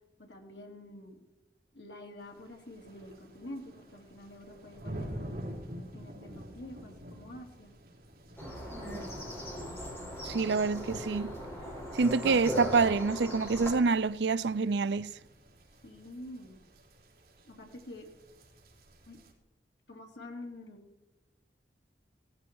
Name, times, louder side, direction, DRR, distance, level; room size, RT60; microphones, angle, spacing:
voice 1, 0.2-1.2 1.7-5.6 5.9-7.7 15.8-16.6 17.4-18.1 19.1-19.2 19.9-20.8, left 1 dB, 85° left, 3.2 m, -47 dB
sound 1, 2.2-19.3, equal, 55° right, 3.9 m, -48 dB
sound 2, 8.4-13.7, equal, 15° left, 6.2 m, -38 dB
voice 2, 10.2-11.3 11.9-15.1, right 4 dB, 80° right, 0.5 m, -27 dB
17.5 x 14.5 x 4.7 m
head